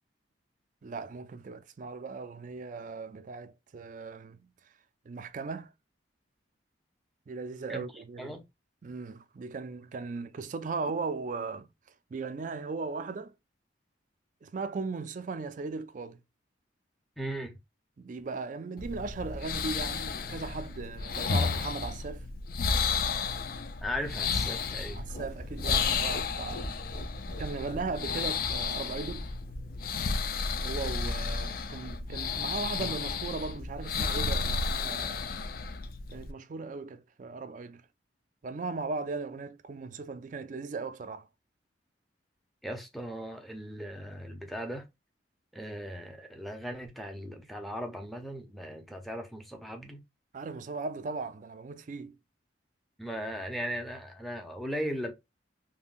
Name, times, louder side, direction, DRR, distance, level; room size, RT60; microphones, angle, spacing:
voice 1, 0.8-4.5 5.1-5.7 7.3-8.3 8.8-11.7 12.1-13.3 14.4-16.2 18.0-22.3 25.0-26.7 27.4-29.3 30.6-35.3 36.1-37.8 38.4-41.3 50.3-52.2, right 4 dB, 45° right, 0.4 m, -37 dB
voice 2, 17.2-17.6 23.8-25.0 42.6-44.8 45.5-50.0 53.0-55.1, equal, ahead, 0.6 m, -37 dB
sound 1, 18.8-36.3, left 5 dB, 50° left, 0.3 m, -32 dB
sound 2, 24.8-32.9, equal, 70° left, 1.4 m, -45 dB
3.5 x 2.1 x 2.4 m
head